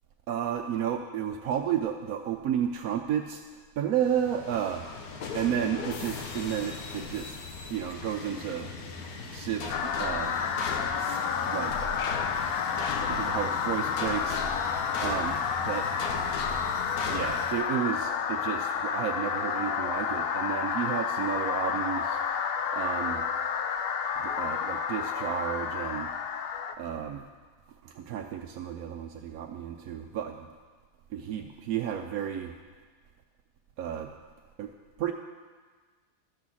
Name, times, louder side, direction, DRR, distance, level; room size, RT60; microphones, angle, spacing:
voice 1, 0.3-3.4 3.8-4.8 5.3-7.4 7.7-8.7 9.3-10.4 11.0-11.2 11.5-11.7 13.0-14.4 15.0-15.9 17.1-22.2 22.7-23.3 24.2-26.1 26.8-27.3 27.8-30.5 31.1-32.5 33.8-34.1 34.6-34.7 35.0-35.1, right 9 dB, 75° right, 3 dB, 1.1 m, -32 dB
sound 1, 4.0-17.5, left 4 dB, 80° left, 1.5 m, -38 dB
sound 2, 9.7-26.8, left 7 dB, 60° left, 0.6 m, -30 dB
12.0 x 6.2 x 7.2 m, 1.5 s
omnidirectional pair, 1.5 m